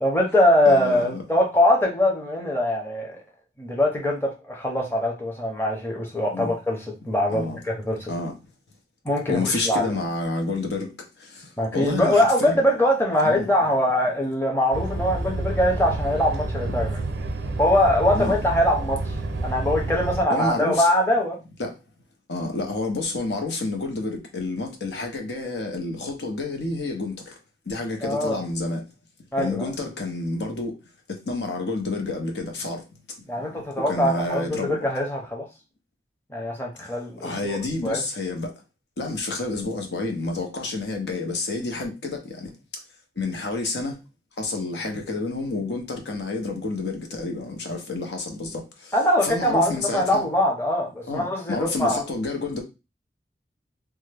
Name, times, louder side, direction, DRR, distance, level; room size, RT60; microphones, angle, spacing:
voice 1, 0.0-3.2 3.6-6.8 7.1-8.1 9.0-9.9 11.6-17.0 17.6-19.1 19.4-21.4 28.0-28.4 29.3-29.6 33.3-35.4 36.3-37.6 37.8-38.0 48.9-52.0, left 1 dB, 15° left, 0.7 m, -22 dB
voice 2, 0.6-1.2 6.3-6.5 7.3-7.6 8.1-8.3 9.3-10.9 11.2-11.5 11.7-12.6 13.2-13.5 18.1-18.3 20.3-20.9 21.6-21.8 22.3-27.3 27.7-28.8 29.4-30.7 31.1-32.8 33.7-34.8 37.2-38.5 39.0-42.5 43.2-44.0 44.4-48.9 49.2-50.2 51.1-52.6, left 3 dB, 75° left, 0.8 m, -29 dB
sound 1, 14.7-20.3, right 2 dB, 85° right, 0.5 m, -29 dB
3.4 x 2.1 x 3.3 m
head